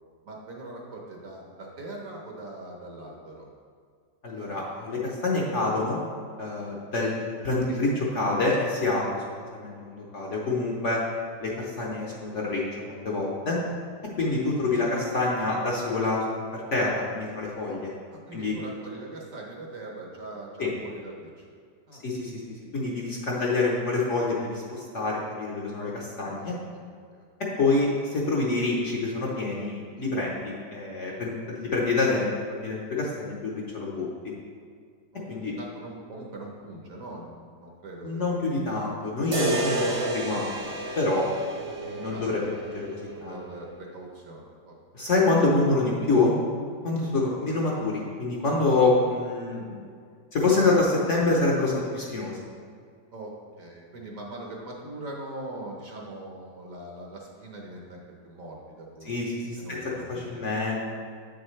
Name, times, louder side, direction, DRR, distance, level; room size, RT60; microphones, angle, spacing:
voice 1, 0.2-3.5 14.6-14.8 18.1-21.4 21.9-22.0 26.2-27.3 35.1-35.3 35.6-38.9 42.1-42.2 43.1-45.1 53.1-59.2 59.6-60.5, right 2 dB, 55° right, -2 dB, 1.3 m, -42 dB
voice 2, 4.2-6.0 6.4-9.2 9.5-11.0 11.4-13.6 14.2-17.9 18.3-18.5 20.6-20.7 22.0-22.4 22.7-26.5 27.4-34.1 35.3-35.5 38.0-40.6 41.0-41.3 41.7-43.4 44.9-46.3 46.8-49.8 50.3-52.4 59.0-60.9, left 3 dB, 50° left, -4 dB, 1.0 m, -26 dB
sound 1, 39.3-43.4, right 1 dB, 35° right, 0.5 m, -31 dB
7.9 x 6.5 x 3.2 m, 2.1 s
omnidirectional pair, 1.9 m